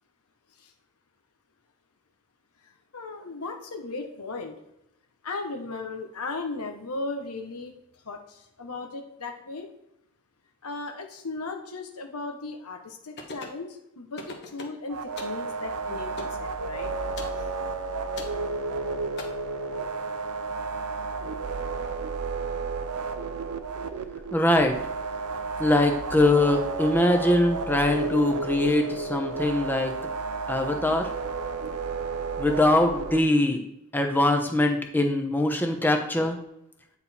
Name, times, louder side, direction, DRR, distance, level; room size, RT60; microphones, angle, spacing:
voice 1, 2.9-4.5 5.2-7.7 8.0-9.7 10.6-16.9 17.4-17.5, left 3 dB, 85° left, 3 dB, 1.1 m, -36 dB
sound 1, 13.2-13.6 14.2-14.8 15.2-15.4 16.2-16.4 17.2-17.4 18.2-18.4 19.2-19.3, left 2 dB, 50° left, 1.2 m, -39 dB
sound 2, 14.9-33.2, right 4 dB, 85° right, 0.6 m, -32 dB
voice 2, 24.3-24.8 25.6-29.9 30.5-31.1 32.4-33.6 33.9-36.4, left 1 dB, 10° left, 4 dB, 0.8 m, -22 dB
9.1 x 4.1 x 4.3 m, 0.82 s
head